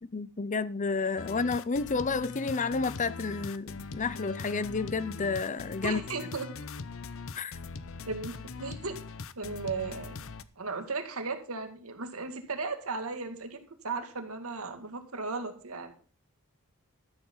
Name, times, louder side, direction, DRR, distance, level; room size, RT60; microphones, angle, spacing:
voice 1, 0.0-6.0 7.3-7.6, left 4 dB, 35° left, 0.6 m, -31 dB
sound 1, 1.2-10.4, left 4 dB, 65° left, 0.8 m, -41 dB
voice 2, 5.8-6.5 8.1-9.0 9.4-10.2 10.6-15.9, right 4 dB, 75° right, 2.3 m, -36 dB
13.0 x 8.1 x 5.6 m
head